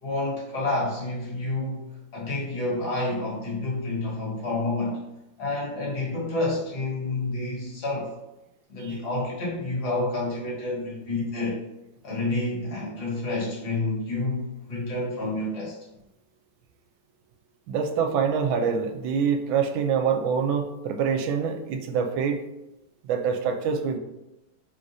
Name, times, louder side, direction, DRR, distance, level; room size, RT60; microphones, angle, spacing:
voice 1, 0.0-1.9 2.1-5.0 5.4-8.1 8.7-11.6 12.0-15.8, left 2 dB, 55° left, -4 dB, 1.8 m, -29 dB
voice 2, 17.7-22.4 23.0-24.0, right 6 dB, 80° right, 5 dB, 1.3 m, -25 dB
4.7 x 3.8 x 2.6 m, 0.94 s
omnidirectional pair, 2.2 m